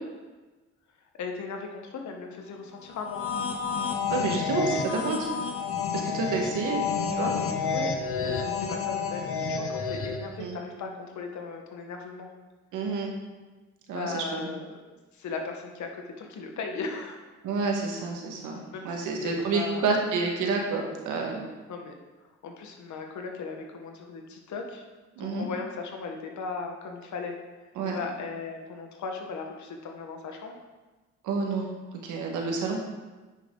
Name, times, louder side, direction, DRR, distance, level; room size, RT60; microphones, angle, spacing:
voice 1, 1.1-3.2 7.6-12.3 13.9-17.2 18.7-19.9 21.7-21.9 22.4-24.9 25.2-27.4 27.8-30.6, left 4 dB, 70° left, 3 dB, 1.3 m, -37 dB
sound 1, 3.0-10.4, left 5 dB, 50° left, 0.8 m, -30 dB
voice 2, 4.1-5.3 5.9-6.8 7.1-7.3 10.4-10.6 12.7-13.1 13.9-14.5 17.4-21.5 25.2-25.5 27.7-28.0 31.2-31.7 32.0-32.8, right 4 dB, 90° right, 1 dB, 1.5 m, -29 dB
9.1 x 5.8 x 3.8 m, 1.2 s
cardioid pair, 90°, 30 cm